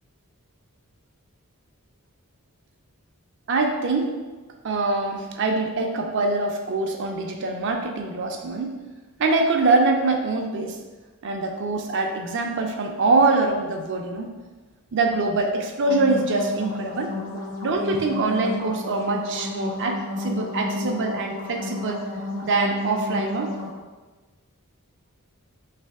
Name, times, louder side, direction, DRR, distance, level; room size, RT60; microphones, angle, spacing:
voice 1, 3.5-4.1 4.6-8.8 9.2-10.8 11.2-14.3 14.9-17.1 17.6-22.0 22.4-23.6, right 3 dB, 60° right, 3 dB, 0.5 m, -24 dB
sound 1, 15.7-23.7, left 2 dB, 40° left, 0.8 m, -32 dB
3.3 x 3.1 x 4.7 m, 1.3 s
head